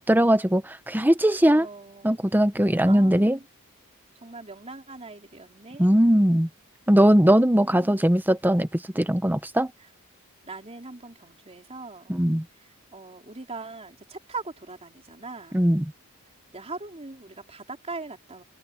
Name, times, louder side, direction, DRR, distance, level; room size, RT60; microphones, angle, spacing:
voice 1, 0.0-1.7 2.0-3.4 5.8-6.5 6.9-9.7 12.1-12.4 15.5-15.8, equal, 10° right, 1.0 m, -20 dB
voice 2, 1.4-2.3 2.9-3.5 4.2-5.9 7.2-8.0 9.8-9.9 10.4-12.2 12.6-15.7 16.5-18.4, right 3 dB, 30° right, 3.8 m, -41 dB
head